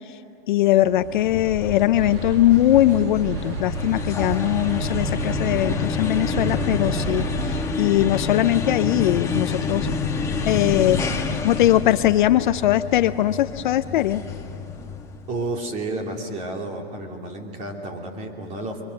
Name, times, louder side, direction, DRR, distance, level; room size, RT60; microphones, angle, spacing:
voice 1, 0.5-9.9 10.5-14.2, left 13 dB, 50° left, 13 dB, 0.6 m, -20 dB
sound 1, 0.9-15.4, left 4 dB, 10° left, 1.3 m, -28 dB
sound 2, 1.9-7.7, right 10 dB, 70° right, 0.5 m, -32 dB
voice 2, 15.3-18.8, right 2 dB, 20° right, 2 dB, 2.8 m, -31 dB
30.0 x 24.0 x 6.5 m, 2.9 s
hypercardioid pair, 155°, 31 cm